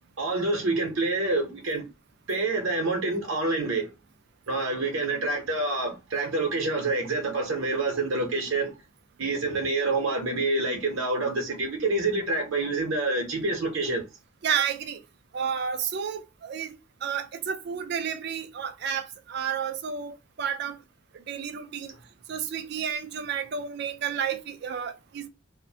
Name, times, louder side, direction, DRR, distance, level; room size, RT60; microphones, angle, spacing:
voice 1, 0.2-1.9 2.3-3.9 4.5-8.8 9.2-14.0, right 2 dB, 70° right, 0.7 m, -27 dB
voice 2, 14.4-15.0 15.3-16.8 17.0-20.8 21.3-21.9 22.3-25.3, right 7 dB, 50° right, 0.3 m, -31 dB
2.5 x 2.1 x 2.6 m
head